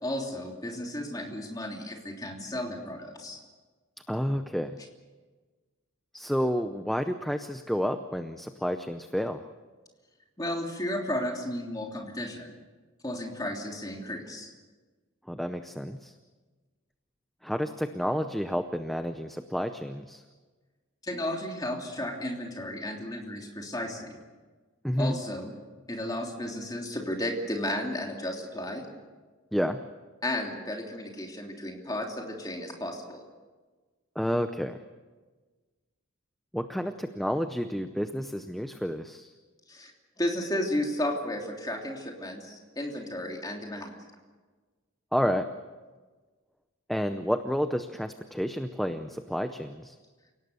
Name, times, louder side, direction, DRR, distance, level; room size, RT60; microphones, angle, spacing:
voice 1, 0.0-3.4 10.4-12.5 13.0-14.5 21.0-24.2 25.0-25.5 25.9-28.9 30.2-33.2 39.7-39.9 40.2-43.9, left 1 dB, 20° left, 1 dB, 3.1 m, -33 dB
voice 2, 4.1-4.8 6.1-9.4 15.3-16.1 17.4-20.2 24.8-25.1 29.5-29.8 34.2-34.8 36.5-39.3 45.1-45.4 46.9-50.0, equal, ahead, 8 dB, 0.6 m, -30 dB
29.0 x 18.0 x 6.9 m, 1.3 s
head